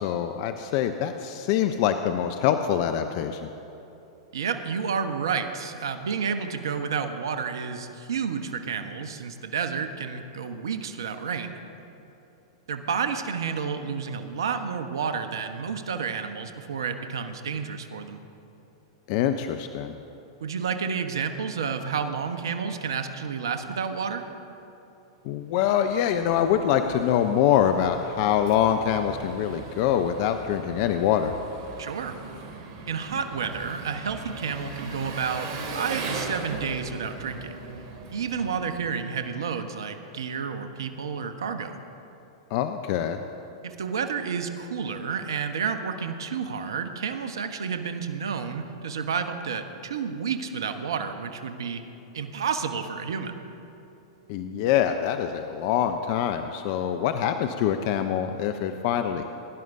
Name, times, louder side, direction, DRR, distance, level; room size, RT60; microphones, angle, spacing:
voice 1, 0.0-3.5 19.1-19.9 25.2-31.4 42.5-43.2 54.3-59.3, left 9 dB, 50° left, 8 dB, 0.6 m, -24 dB
voice 2, 4.3-11.6 12.7-18.2 20.4-24.3 31.8-32.2 32.9-37.5 38.1-41.8 43.6-51.8 52.1-53.4, right 6 dB, 75° right, 8 dB, 0.8 m, -30 dB
Engine, 25.6-39.2, right 3 dB, 50° right, 2.3 m, -39 dB
20.5 x 11.0 x 2.6 m, 2.9 s
hypercardioid pair, 105°, 2 cm